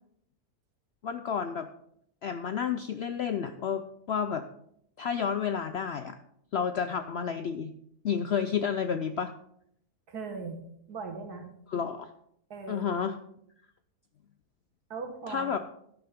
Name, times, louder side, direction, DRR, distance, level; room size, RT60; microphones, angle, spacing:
voice 1, 1.0-1.7 2.2-4.5 5.0-6.2 6.5-7.7 8.0-9.3 11.7-12.1 12.7-13.2 15.3-15.6, left 7 dB, 70° left, 9 dB, 0.6 m, -30 dB
voice 2, 10.1-10.6 10.9-11.5 12.5-12.9 14.9-15.6, right 4 dB, 75° right, 5 dB, 2.1 m, -38 dB
11.5 x 10.5 x 3.6 m, 0.72 s
omnidirectional pair, 1.7 m